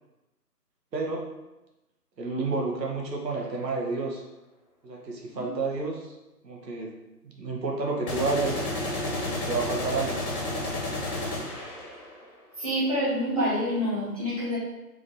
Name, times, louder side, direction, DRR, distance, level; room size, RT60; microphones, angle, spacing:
voice 1, 0.9-1.3 2.2-4.2 4.8-6.1 6.4-6.9 7.2-8.7 9.5-10.2, right 3 dB, 85° right, -1 dB, 1.1 m, -30 dB
sound 1, 3.3-3.5 8.1-12.2, left 1 dB, 60° left, 1.4 m, -31 dB
voice 2, 12.6-14.6, equal, 25° right, -11 dB, 0.7 m, -27 dB
3.5 x 2.5 x 3.8 m, 1.0 s
figure-of-eight pair, 165°, 49 cm